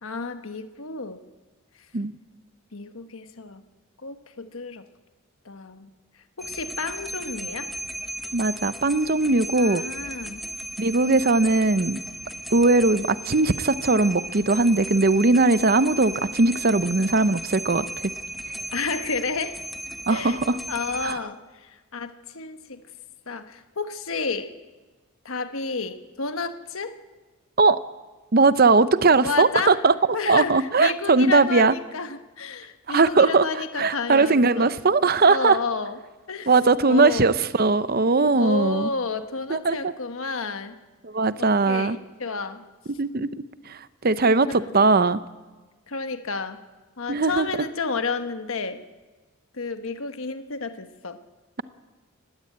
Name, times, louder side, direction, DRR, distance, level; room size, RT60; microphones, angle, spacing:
voice 1, 0.0-1.2 2.7-3.6 4.0-4.8 5.4-5.9 6.4-7.7 9.5-10.4 18.7-19.5 20.1-20.4 20.7-22.8 23.3-24.5 25.2-27.0 29.2-29.8 30.1-34.7 35.2-36.0 36.3-36.5 36.9-37.3 38.3-40.8 41.4-42.6 44.5-44.8 45.9-46.6 47.0-48.8 49.5-51.2, left 4 dB, 75° left, 8 dB, 1.2 m, -31 dB
sound 1, 6.4-21.1, right 1 dB, ahead, 0.8 m, -36 dB
voice 2, 8.3-9.8 10.8-12.0 12.5-18.1 20.1-20.6 21.0-21.2 27.6-27.8 28.3-29.9 30.3-31.7 32.9-33.5 33.8-35.6 36.5-38.9 39.5-39.9 41.0-42.0 43.0-43.3 43.7-45.2 47.1-47.5, right 3 dB, 45° right, 14 dB, 0.7 m, -20 dB
19.5 x 16.0 x 8.7 m, 1.3 s
head